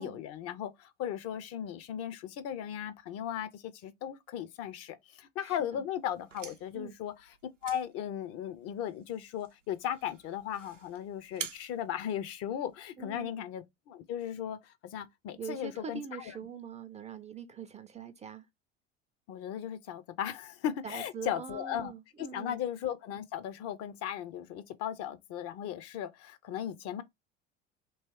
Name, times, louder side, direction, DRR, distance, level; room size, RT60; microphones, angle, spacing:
voice 1, 0.0-7.1 7.6-16.0 19.3-21.9 22.2-27.0, left 10 dB, 40° left, 0.7 m, -37 dB
voice 2, 5.4-5.8 6.7-6.9 13.0-13.3 15.4-18.5 20.8-22.6, right 6 dB, 20° right, 0.5 m, -43 dB
sound 1, 6.1-12.9, right 6 dB, 90° right, 0.6 m, -48 dB
3.1 x 3.0 x 4.4 m
figure-of-eight pair, 70°, 36 cm